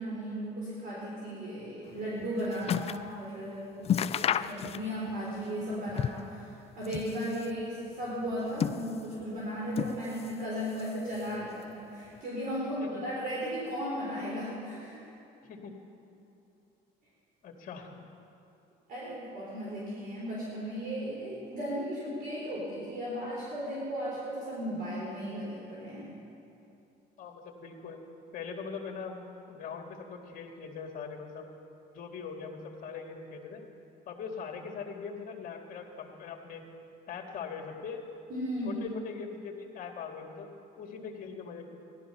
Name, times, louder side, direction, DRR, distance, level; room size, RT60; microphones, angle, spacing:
voice 1, 0.0-15.1 18.9-26.1 38.3-38.8, equal, 55° right, -6 dB, 3.8 m, -36 dB
sound 1, 1.9-3.1 3.5-3.6 3.8-5.1 5.4-6.4 6.7-7.6 8.2-9.2 9.7-10.4 10.7-11.5 12.2-12.3, left 9 dB, 35° left, 0.4 m, -33 dB
voice 2, 17.4-18.0 27.2-28.0 28.3-29.2 29.5-31.5 31.9-33.6 34.1-36.6 37.1-38.0 38.6-40.5 40.8-41.7, left 5 dB, 55° left, 2 dB, 2.1 m, -41 dB
16.5 x 12.0 x 5.7 m, 2.8 s
cardioid pair, 110°, 17 cm